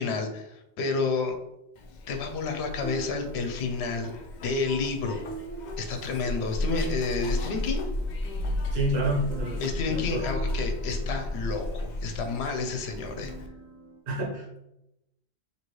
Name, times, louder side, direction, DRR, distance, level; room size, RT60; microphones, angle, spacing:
voice 1, 0.0-1.4 2.1-4.2 4.4-5.2 5.8-7.9 9.6-13.3, left 4 dB, 75° left, 6 dB, 0.9 m, -30 dB
Zipper (clothing), 1.8-13.5, left 1 dB, 55° left, 0.5 m, -34 dB
sound 1, 2.8-14.0, right 4 dB, 15° left, 0.8 m, -44 dB
voice 2, 8.7-10.3 11.0-11.1 14.1-14.6, right 1 dB, 60° right, -1 dB, 1.1 m, -29 dB
4.5 x 2.9 x 3.0 m, 0.85 s
omnidirectional pair, 1.1 m